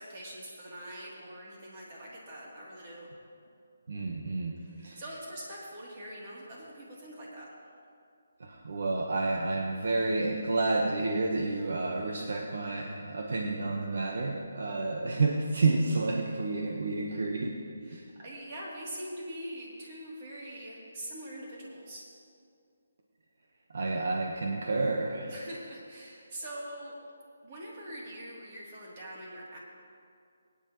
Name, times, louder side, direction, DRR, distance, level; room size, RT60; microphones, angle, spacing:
voice 1, 0.0-3.1 4.6-7.5 17.9-22.0 25.3-26.9 27.4-29.6, right 1 dB, 30° right, -5 dB, 3.0 m, -43 dB
voice 2, 3.9-5.0 8.4-17.6 17.9-18.0 23.7-25.3, right 3 dB, 60° right, 0 dB, 1.2 m, -30 dB
21.0 x 9.8 x 3.1 m, 2.3 s
hypercardioid pair, 165°, 0 cm